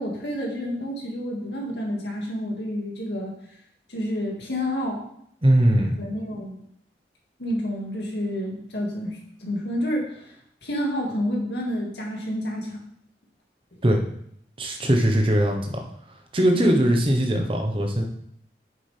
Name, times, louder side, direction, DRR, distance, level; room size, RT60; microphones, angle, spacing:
voice 1, 0.0-3.3 3.9-5.0 6.0-6.6 7.4-10.3 10.6-12.8 16.5-16.9, equal, 75° left, -1 dB, 2.2 m, -29 dB
voice 2, 5.4-6.0 13.8-14.0 14.6-15.8 16.3-18.0, right 1 dB, 30° right, 2 dB, 1.1 m, -20 dB
8.8 x 7.2 x 3.5 m, 0.70 s
head